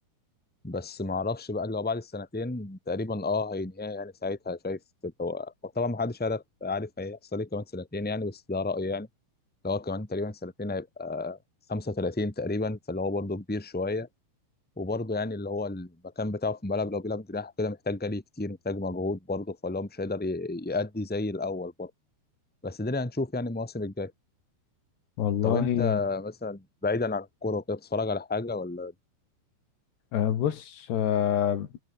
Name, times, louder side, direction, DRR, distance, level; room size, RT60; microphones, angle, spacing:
voice 1, 0.6-9.1 9.6-11.4 11.7-14.1 14.8-21.9 22.6-24.1 25.4-28.9, left 3 dB, 5° left, 2.5 m, -31 dB
voice 2, 25.2-26.0 30.1-31.8, left 10 dB, 70° left, 4.2 m, -26 dB
omnidirectional pair, 5.1 m